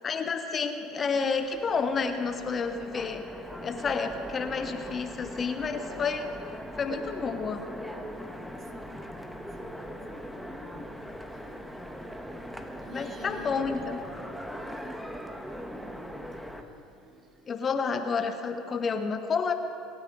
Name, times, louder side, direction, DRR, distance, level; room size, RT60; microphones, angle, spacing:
voice 1, 0.0-3.2 3.6-6.3 6.8-7.6 12.9-14.0 17.5-19.5, left 5 dB, 35° left, 7 dB, 0.9 m, -30 dB
Train, 1.2-16.6, equal, ahead, 1.2 m, -40 dB
voice 2, 9.6-10.2 12.8-13.6 14.5-14.9 16.9-17.4, right 1 dB, 35° right, 1 dB, 2.4 m, -49 dB
23.0 x 9.4 x 3.9 m, 2.7 s
hypercardioid pair, 75°, 0 cm